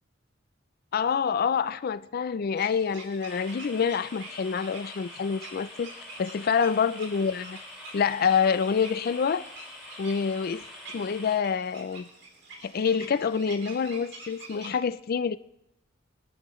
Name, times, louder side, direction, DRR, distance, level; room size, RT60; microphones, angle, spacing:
voice 1, 0.9-5.9 6.2-7.6 7.9-9.4 10.0-10.6 10.9-12.1 12.6-15.4, left 6 dB, 50° left, 0.4 m, -27 dB
sound 1, 2.6-14.7, right 3 dB, 65° right, 3.5 m, -48 dB
sound 2, 3.3-11.4, left 2 dB, ahead, 5.0 m, -45 dB
26.0 x 11.5 x 3.1 m
head